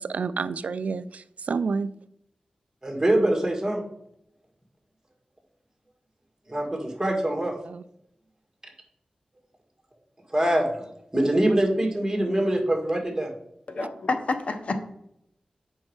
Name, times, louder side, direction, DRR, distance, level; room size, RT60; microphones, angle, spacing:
voice 1, 0.0-1.9 7.6-7.8, right 5 dB, 75° right, 15 dB, 0.4 m, -29 dB
voice 2, 2.8-3.8 6.5-7.6 10.3-10.9 11.1-13.3, right 1 dB, 15° right, 1 dB, 1.9 m, -24 dB
voice 3, 13.7-14.8, left 3 dB, 60° left, 7 dB, 0.9 m, -28 dB
7.2 x 5.4 x 4.7 m, 0.76 s
wide cardioid pair, 90°, 2 cm